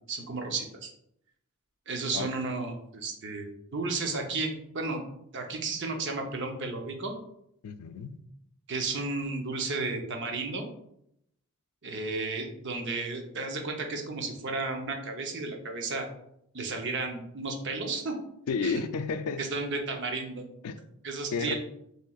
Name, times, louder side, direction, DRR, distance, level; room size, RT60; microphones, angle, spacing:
voice 1, 0.1-0.9 1.9-5.0 5.3-7.1 8.7-10.7 11.8-16.1 16.5-18.2 18.6-18.8 19.4-20.4 21.0-21.5, right 3 dB, 50° right, 3 dB, 0.7 m, -33 dB
voice 2, 7.6-8.2 18.5-19.4 20.6-20.8 21.3-21.5, left 5 dB, 85° left, 10 dB, 0.4 m, -31 dB
5.7 x 3.1 x 2.3 m, 0.76 s
head